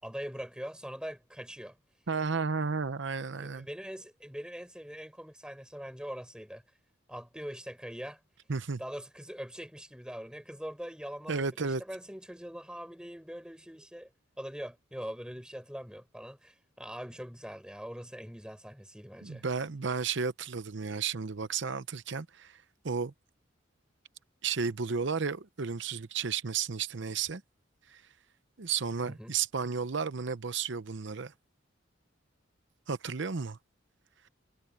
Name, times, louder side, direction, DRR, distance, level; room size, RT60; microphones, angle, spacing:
voice 1, 0.0-1.8 3.4-6.6 7.1-8.2 8.8-14.1 14.4-19.4 29.0-29.3, equal, 5° right, 6.3 m, -42 dB
voice 2, 2.1-3.7 8.5-8.8 11.3-11.8 19.2-22.6 22.8-23.1 24.4-27.4 27.9-28.0 28.6-31.3 32.9-33.6, right 5 dB, 60° right, 0.8 m, -33 dB
head